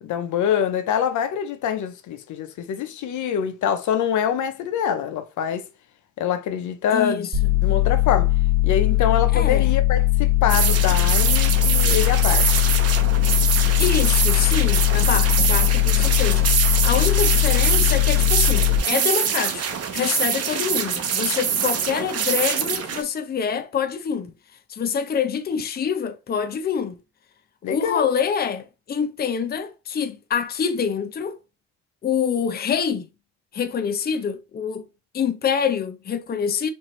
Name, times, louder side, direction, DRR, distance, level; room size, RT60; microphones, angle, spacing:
voice 1, 0.0-5.7 6.2-7.3 7.6-8.3 8.6-12.6 27.6-28.1, left 8 dB, 75° left, 0.7 m, -25 dB
voice 2, 6.9-7.3 9.3-9.7 13.8-19.7 19.9-24.3 24.7-27.0 27.6-31.4 32.0-33.1 33.5-34.8 35.1-36.7, left 7 dB, 30° left, 0.6 m, -26 dB
sound 1, 7.3-18.8, left 16 dB, 30° right, 1.1 m, -19 dB
sound 2, 10.5-23.0, right 7 dB, 55° right, 0.9 m, -24 dB
4.4 x 2.7 x 3.1 m
cardioid pair, 90°, 30 cm